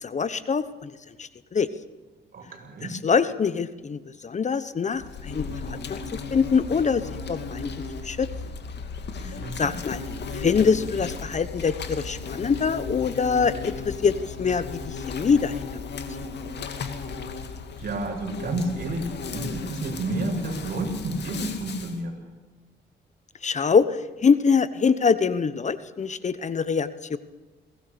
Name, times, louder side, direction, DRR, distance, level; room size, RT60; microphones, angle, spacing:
voice 1, 0.0-0.9 1.2-1.7 2.8-7.0 7.3-7.7 8.0-8.3 9.2-9.3 9.6-10.0 10.3-15.5 16.2-16.3 23.4-27.2, left 5 dB, 35° left, 14 dB, 1.0 m, -24 dB
voice 2, 2.3-3.0 9.1-9.8 17.8-22.2, right 2 dB, 50° right, 2 dB, 7.0 m, -30 dB
Insect, 5.0-22.0, left 4 dB, 60° left, 2.6 m, -35 dB
22.5 x 18.5 x 6.9 m, 1.2 s
cardioid pair, 90°, 20 cm